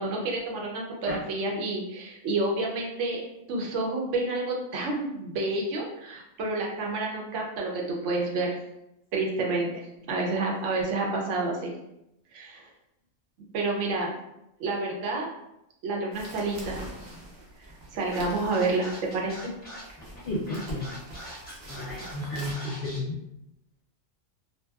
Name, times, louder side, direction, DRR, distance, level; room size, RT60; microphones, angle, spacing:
voice 1, 0.0-3.2 3.5-8.6 9.1-9.8 10.1-11.7 12.3-12.7 13.5-14.2 14.6-15.3 15.8-16.8 17.9-19.5, right 2 dB, 75° right, -1 dB, 0.9 m, -29 dB
sound 1, 16.1-22.5, right 1 dB, 50° right, 0.5 m, -45 dB
Scratching (performance technique), 18.1-23.0, equal, 10° left, 0.4 m, -43 dB
voice 2, 20.2-20.9 21.7-23.2, left 1 dB, 60° left, -5 dB, 0.5 m, -32 dB
2.7 x 2.2 x 2.2 m, 0.84 s
omnidirectional pair, 1.3 m